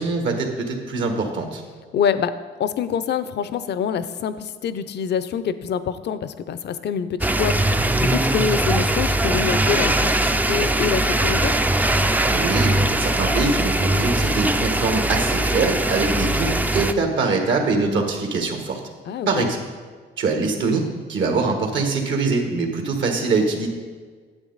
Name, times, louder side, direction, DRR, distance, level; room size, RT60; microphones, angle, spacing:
voice 1, 0.0-1.6 12.3-18.8 19.3-19.6 20.2-23.7, right 3 dB, 70° right, 3 dB, 1.6 m, -23 dB
voice 2, 1.9-2.3 2.6-11.5 19.1-19.5, left 7 dB, 60° left, 13 dB, 0.6 m, -26 dB
sound 1, 7.2-16.9, right 1 dB, 10° right, 0.4 m, -21 dB
9.7 x 7.8 x 4.0 m, 1.5 s
cardioid pair, 90°, 20 cm